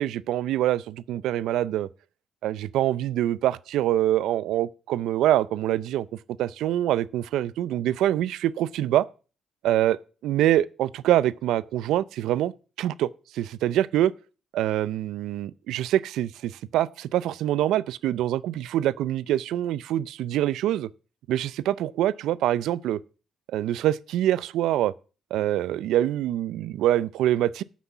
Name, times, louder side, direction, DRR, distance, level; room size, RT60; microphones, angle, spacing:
voice 1, 0.0-1.9 2.4-6.1 6.4-9.0 9.6-10.0 10.2-12.5 12.8-13.1 13.3-14.1 14.5-20.9 21.3-23.0 23.5-24.9 25.3-27.6, right 13 dB, 85° right, 0.4 m, -25 dB
9.5 x 6.2 x 7.0 m
cardioid pair, 90°, 0 cm